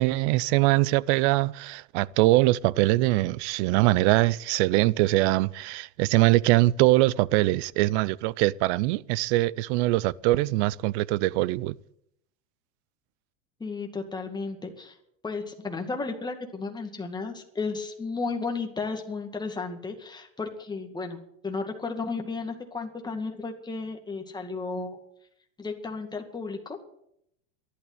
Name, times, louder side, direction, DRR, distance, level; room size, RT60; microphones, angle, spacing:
voice 1, 0.0-11.7, right 18 dB, 55° right, 0.6 m, -23 dB
voice 2, 13.6-15.0 15.2-25.0 25.6-26.8, left 4 dB, 10° left, 2.2 m, -33 dB
14.0 x 11.5 x 8.1 m
supercardioid pair, 135°, 40 cm